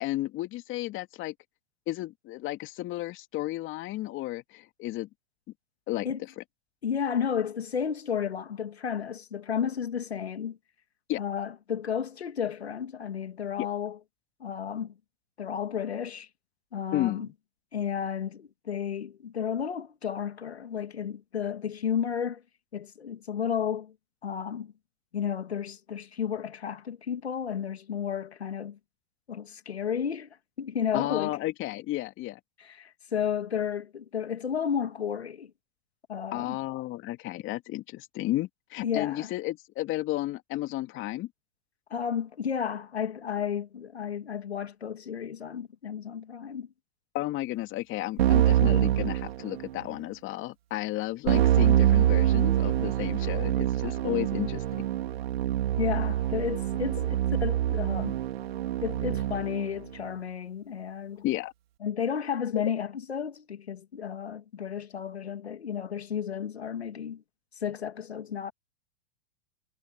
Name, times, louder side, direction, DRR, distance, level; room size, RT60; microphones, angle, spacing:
voice 1, 0.0-1.3 1.9-5.1 5.9-6.1 6.4-6.5 11.1-11.2 13.6-13.7 16.9-17.3 30.9-32.4 36.3-41.3 47.1-54.6 61.2-61.5, left 16 dB, 40° left, 2.7 m, -32 dB
voice 2, 6.8-10.6 11.2-14.0 14.4-14.9 15.4-16.3 16.7-17.3 17.7-22.4 22.7-23.9 24.2-24.7 25.1-28.8 29.3-31.4 32.6-35.5 36.1-36.6 38.8-39.3 41.9-46.7 55.8-57.2 57.4-58.2 58.8-61.2 61.8-67.2 67.6-68.5, left 8 dB, 90° left, 2.5 m, -32 dB
Keyboard (musical), 48.2-49.9 51.3-59.6, right 12 dB, 75° right, 4.8 m, -25 dB
hypercardioid pair, 105°, 31 cm